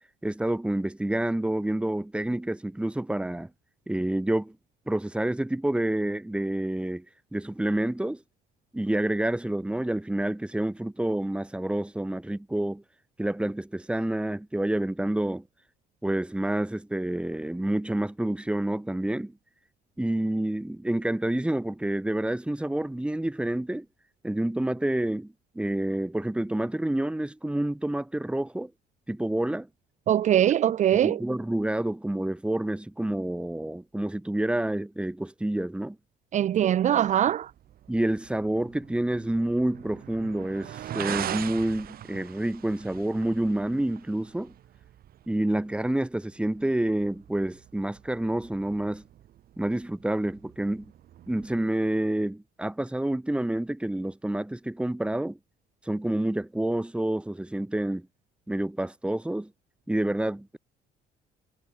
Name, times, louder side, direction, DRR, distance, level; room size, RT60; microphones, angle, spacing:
voice 1, 0.2-3.5 3.9-4.6 4.9-7.0 7.3-8.2 8.7-12.8 13.2-15.4 16.0-19.3 20.0-23.9 24.2-28.7 29.1-29.7 30.9-36.0 37.9-44.5 45.3-49.0 49.6-50.9 51.3-55.4 55.8-58.1 58.5-59.5 59.9-60.6, right 1 dB, 5° right, 2.9 m, -28 dB
voice 2, 30.1-31.2 36.3-37.5, right 11 dB, 45° right, 0.6 m, -22 dB
sound 1, 37.0-51.6, right 11 dB, 60° right, 7.8 m, -42 dB
cardioid pair, 110°, 17 cm